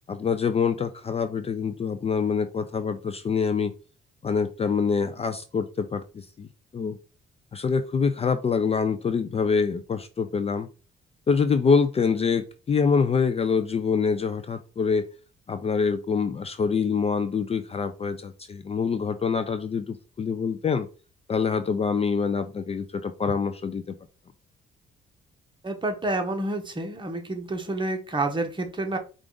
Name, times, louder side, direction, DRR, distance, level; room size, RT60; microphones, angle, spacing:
voice 1, 0.1-3.7 4.2-6.5 6.7-7.0 7.5-10.7 11.3-15.1 15.5-20.9 21.3-24.0, left 5 dB, 30° left, 10 dB, 0.4 m, -25 dB
voice 2, 25.6-29.0, right 2 dB, 25° right, 4 dB, 1.1 m, -29 dB
4.7 x 2.5 x 3.8 m, 0.33 s
cardioid pair, 90°, 20 cm